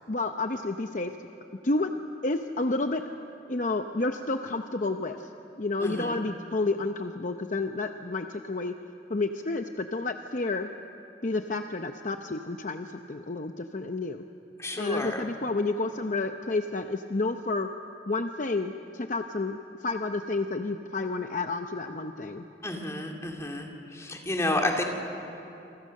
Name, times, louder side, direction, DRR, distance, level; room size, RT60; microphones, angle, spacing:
voice 1, 0.1-1.1 1.6-1.9 2.2-3.0 3.5-5.3 5.6-8.7 9.1-10.7 11.2-14.2 14.8-17.7 18.1-22.4, left 3 dB, 45° left, 6 dB, 0.8 m, -30 dB
voice 2, 5.8-6.2 14.6-15.3 22.6-24.8, left 1 dB, 15° left, 1 dB, 2.7 m, -31 dB
27.5 x 24.0 x 6.6 m, 2.9 s
head